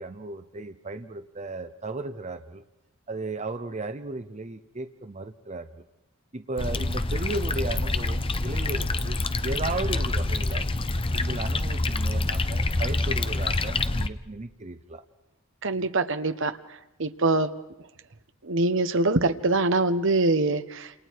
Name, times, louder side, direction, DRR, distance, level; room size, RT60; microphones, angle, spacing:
voice 1, 0.0-2.6 3.1-5.8 6.3-10.7 11.1-15.0, right 2 dB, 35° right, 9 dB, 0.8 m, -35 dB
sound 1, 6.6-14.1, left 2 dB, 25° left, 0.8 m, -26 dB
voice 2, 15.6-16.6 17.0-17.5 18.4-20.9, right 2 dB, 65° right, 11 dB, 1.1 m, -24 dB
29.5 x 27.5 x 4.7 m, 0.93 s
head